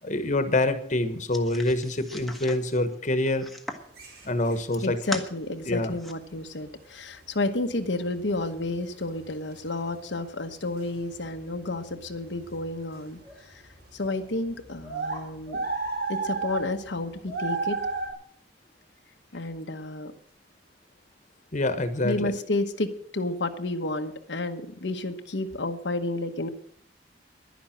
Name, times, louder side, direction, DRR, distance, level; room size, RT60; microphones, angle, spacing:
voice 1, 0.0-3.5 4.2-5.0 5.7-6.0 21.5-22.3, left 2 dB, 45° left, 10 dB, 1.3 m, -26 dB
sound 1, 1.3-3.9 4.4-5.3 5.7-6.1, left 1 dB, ahead, 1.4 m, -39 dB
sound 2, 4.0-4.6 6.5-6.7 7.3-7.4 7.7-10.2 10.5-18.1, right 4 dB, 60° right, 4.6 m, -34 dB
voice 2, 4.8-13.6 13.9-15.6 16.1-17.8 19.3-20.1 22.0-26.5, left 2 dB, 90° left, 5 dB, 1.2 m, -31 dB
11.5 x 10.5 x 7.7 m, 0.62 s
head